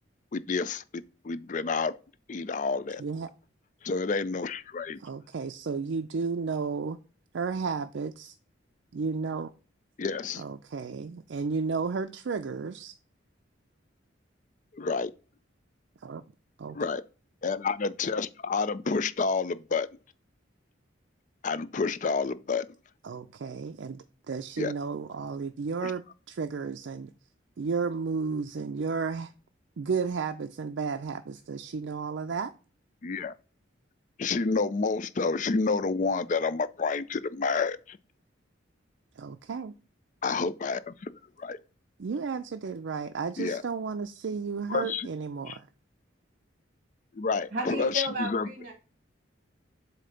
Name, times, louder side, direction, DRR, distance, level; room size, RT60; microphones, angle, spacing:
voice 1, 0.3-1.9 2.3-3.0 3.8-5.0 10.0-10.4 14.7-15.1 16.7-17.0 17.4-19.9 21.4-22.7 24.6-24.7 25.8-25.9 33.0-33.3 34.2-38.0 40.2-41.6 43.4-43.6 44.7-45.1 45.5-45.6 47.1-48.5, left 4 dB, 40° left, 0.4 m, -29 dB
voice 2, 5.0-7.0 7.3-8.3 8.9-9.5 10.4-12.9 16.0-16.2 16.6-16.8 23.0-27.1 27.6-29.3 29.8-32.5 39.2-39.7 42.0-45.7, right 5 dB, 70° right, 0.4 m, -33 dB
voice 3, 47.5-48.7, equal, 45° right, 1.5 m, -33 dB
7.6 x 2.8 x 5.1 m
head